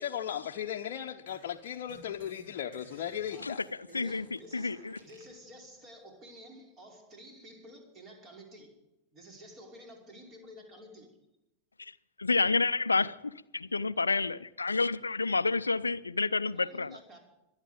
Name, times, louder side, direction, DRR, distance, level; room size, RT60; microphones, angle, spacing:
voice 1, 0.0-3.6, left 9 dB, 50° left, 0.8 m, -36 dB
sound 1, 1.3-5.4, right 1 dB, 60° right, 5.6 m, -57 dB
voice 2, 3.3-8.8 9.1-11.1 16.5-17.2, equal, 30° right, 5.3 m, -51 dB
voice 3, 3.9-5.0 11.8-11.9 12.2-17.2, left 3 dB, 80° left, 0.5 m, -29 dB
25.0 x 9.0 x 5.2 m
figure-of-eight pair, 90°, 0 cm